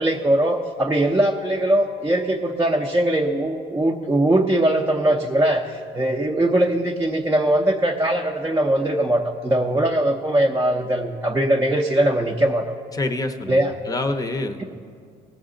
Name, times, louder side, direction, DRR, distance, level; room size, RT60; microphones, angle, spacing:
voice 1, 0.0-12.7 13.5-13.7 14.6-14.7, right 1 dB, 15° right, 0 dB, 0.7 m, -21 dB
voice 2, 12.9-14.6, left 2 dB, 20° left, 7 dB, 0.7 m, -27 dB
18.0 x 7.1 x 3.8 m, 2.2 s
cardioid pair, 110°, 17 cm